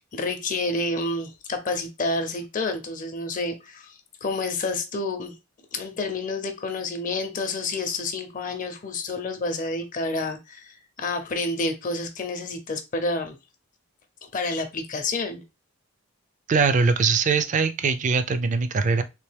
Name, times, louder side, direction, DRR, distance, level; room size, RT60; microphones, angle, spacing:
voice 1, 0.1-5.3 5.7-13.4 14.3-15.4, left 2 dB, 40° left, 0.6 m, -29 dB
voice 2, 16.5-19.0, right 4 dB, 35° right, 0.4 m, -22 dB
3.3 x 2.9 x 3.3 m
head